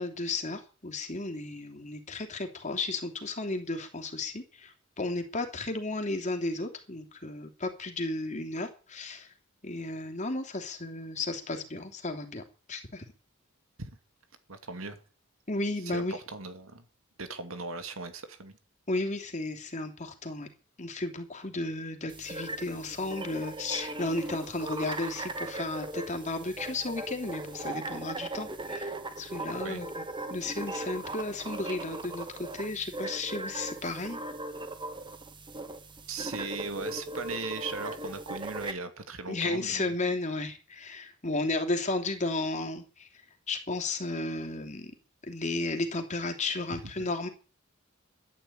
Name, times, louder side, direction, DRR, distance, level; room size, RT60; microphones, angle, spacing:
voice 1, 0.0-9.3 9.6-12.4 12.7-13.0 15.5-16.2 18.9-20.5 20.8-30.0 30.3-34.2 39.3-43.1 43.5-44.9 45.3-47.3, left 2 dB, 35° left, 4 dB, 3.1 m, -33 dB
voice 2, 14.5-15.0 15.8-16.9 17.2-18.6 29.6-29.8 36.1-39.9 46.7-47.1, right 3 dB, 75° right, 9 dB, 2.4 m, -38 dB
sound 1, 22.1-38.7, right 2 dB, 25° right, 1.4 m, -39 dB
13.0 x 10.0 x 8.8 m, 0.37 s
head